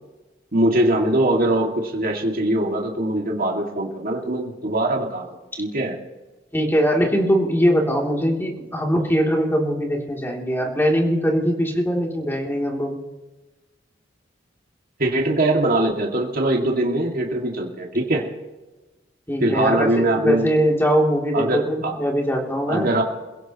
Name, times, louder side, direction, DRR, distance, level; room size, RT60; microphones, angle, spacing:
voice 1, 0.5-5.3 5.6-5.9 15.0-18.2 19.4-20.5 21.3-21.9 22.7-23.0, right 1 dB, 50° right, 0 dB, 2.4 m, -22 dB
voice 2, 6.5-13.0 19.3-22.9, equal, 10° left, -1 dB, 3.1 m, -21 dB
28.0 x 16.5 x 3.1 m, 1.1 s
head